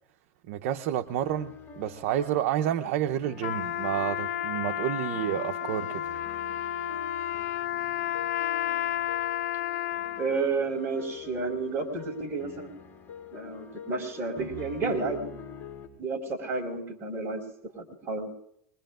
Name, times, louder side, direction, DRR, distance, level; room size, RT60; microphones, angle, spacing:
voice 1, 0.5-6.0, right 11 dB, 60° right, 7 dB, 0.8 m, -29 dB
sound 1, 1.1-15.9, left 7 dB, 20° left, 3.8 m, -46 dB
Trumpet, 3.4-10.4, left 12 dB, 70° left, 0.8 m, -31 dB
voice 2, 10.2-12.7 13.3-15.3 16.0-18.3, right 4 dB, 30° right, 1 dB, 4.8 m, -31 dB
26.0 x 21.5 x 2.5 m, 0.73 s
supercardioid pair, 135°, 8 cm